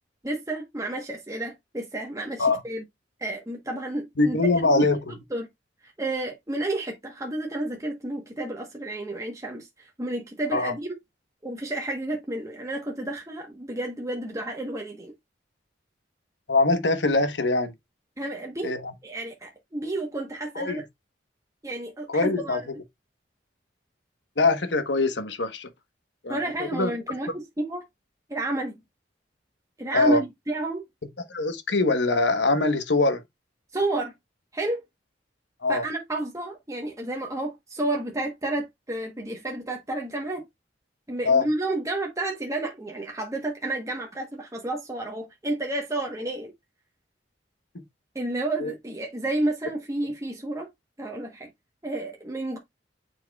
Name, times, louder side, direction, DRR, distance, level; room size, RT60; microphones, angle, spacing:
voice 1, 0.2-2.8 3.2-4.4 4.6-5.0 5.3-5.5 6.0-10.9 11.4-15.1 18.2-18.8 19.0-20.8 21.6-22.6 26.3-27.8 28.3-28.8 29.8-30.8 33.7-34.1 34.5-34.8 35.7-40.4 41.1-46.5 48.1-50.7 51.0-51.5 51.8-52.6, right 2 dB, 20° right, 1.1 m, -31 dB
voice 2, 4.2-5.1 10.5-10.7 16.5-17.7 18.6-18.9 20.5-20.8 22.1-22.6 24.4-25.7 26.2-26.9 27.3-27.4 29.9-30.2 31.3-33.2 35.6-35.8 41.2-41.5 48.6-48.7, left 3 dB, 75° left, 1.1 m, -23 dB
9.4 x 4.6 x 2.3 m
head